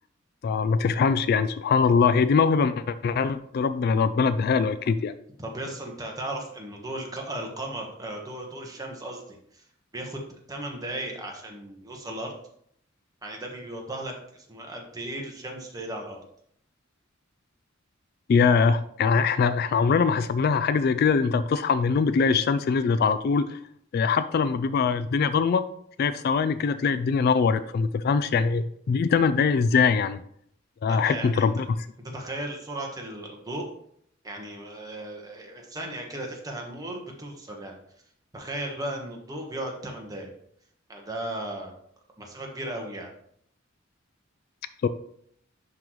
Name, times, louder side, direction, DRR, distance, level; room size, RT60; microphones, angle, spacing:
voice 1, 0.4-5.1 18.3-23.6 23.9-25.6 26.0-30.2 30.8-31.7 44.8-44.9, left 5 dB, 50° left, 13 dB, 0.3 m, -22 dB
voice 2, 5.4-9.6 9.9-10.2 10.5-12.3 13.2-16.2 30.9-31.5 32.1-33.7 34.2-37.7 38.3-40.3 40.9-41.7 42.2-43.1, right 1 dB, 20° right, 1 dB, 1.3 m, -36 dB
10.5 x 3.9 x 3.1 m, 0.67 s
head